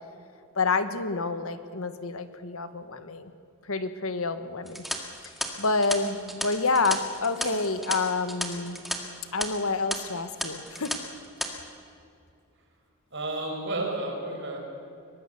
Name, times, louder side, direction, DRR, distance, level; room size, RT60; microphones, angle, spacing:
voice 1, 0.5-3.3 3.6-4.8 5.6-8.8 9.3-10.9, left 3 dB, 75° left, 11 dB, 1.3 m, -28 dB
sound 1, 4.7-9.0 9.2-9.4 9.9-10.0 10.4-11.0 11.2-11.5, equal, ahead, 2.0 m, -33 dB
voice 2, 13.1-14.6, right 2 dB, 55° right, 1 dB, 5.4 m, -31 dB
23.5 x 19.5 x 6.9 m, 2.5 s
head